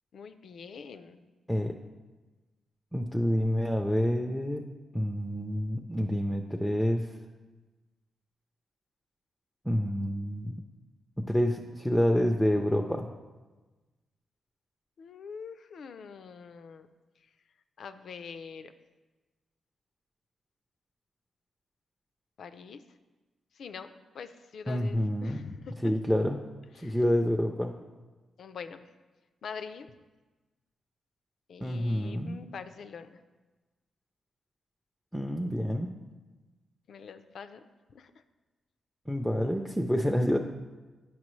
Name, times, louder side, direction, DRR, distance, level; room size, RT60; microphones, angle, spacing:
voice 1, 0.1-1.3 15.0-16.9 17.8-18.7 22.4-22.8 23.5-25.9 26.8-27.0 28.4-28.9 29.4-29.9 31.5-33.2 36.9-37.6 37.9-38.2, left 6 dB, 65° left, 10 dB, 0.4 m, -44 dB
voice 2, 2.9-4.7 4.9-7.1 9.6-10.6 11.2-13.2 24.7-25.5 25.8-26.4 26.8-27.7 31.6-32.4 35.1-35.9 39.1-40.4, equal, ahead, 3 dB, 0.4 m, -28 dB
8.6 x 5.9 x 3.1 m, 1.2 s
cardioid pair, 90°, 0 cm